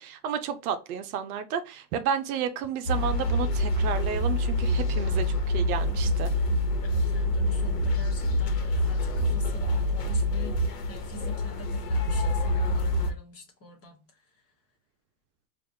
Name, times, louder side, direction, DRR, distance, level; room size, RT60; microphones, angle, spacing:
voice 1, 0.0-6.3, right 8 dB, 60° right, 0.6 m, -31 dB
sound 1, 2.9-13.1, left 1 dB, 75° left, 1.2 m, -26 dB
voice 2, 6.8-14.4, left 2 dB, 30° left, 1.2 m, -46 dB
4.6 x 2.5 x 2.7 m
hypercardioid pair, 120°, 49 cm